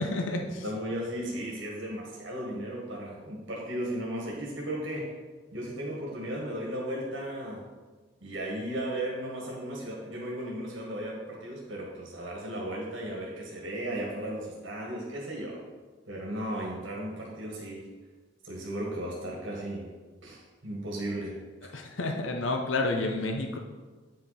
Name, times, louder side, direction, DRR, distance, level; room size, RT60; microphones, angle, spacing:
voice 1, 0.0-0.6 21.7-23.6, left 2 dB, 85° left, 3 dB, 0.8 m, -30 dB
voice 2, 0.6-5.1 5.5-7.7 8.2-15.6 16.1-17.9 18.4-19.9 20.2-21.3 21.6-21.7, right 1 dB, 90° right, -2 dB, 1.7 m, -35 dB
8.7 x 5.8 x 4.2 m, 1.4 s
head